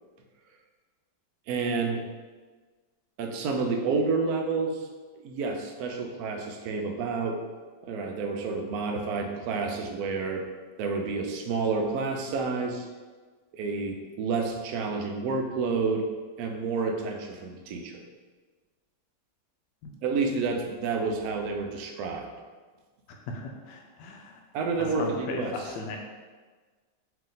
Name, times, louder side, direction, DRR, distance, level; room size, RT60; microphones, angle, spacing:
voice 1, 1.5-2.0 3.2-4.9 5.2-7.4 7.8-10.5 10.8-12.9 13.5-16.1 16.4-18.0 20.0-22.3 24.5-25.7, right 4 dB, 70° right, 3 dB, 0.9 m, -29 dB
voice 2, 23.1-24.4 24.9-26.0, left 3 dB, 75° left, 1 dB, 1.2 m, -37 dB
3.4 x 2.8 x 3.8 m, 1.4 s
omnidirectional pair, 1.9 m